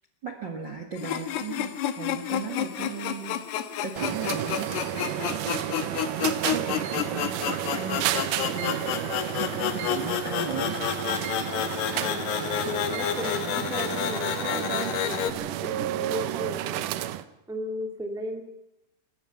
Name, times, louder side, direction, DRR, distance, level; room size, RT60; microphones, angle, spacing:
voice 1, 0.2-4.7 5.1-5.4 6.5-9.0 9.3-10.8, right 5 dB, 50° right, 4 dB, 1.3 m, -36 dB
sound 1, 1.0-15.3, left 10 dB, 75° left, 3.2 m, -30 dB
sound 2, 4.0-17.2, right 13 dB, 80° right, 1.8 m, -31 dB
voice 2, 12.6-17.1 17.5-18.4, equal, ahead, 3 dB, 0.9 m, -36 dB
29.5 x 15.5 x 5.8 m, 0.84 s
omnidirectional pair, 4.7 m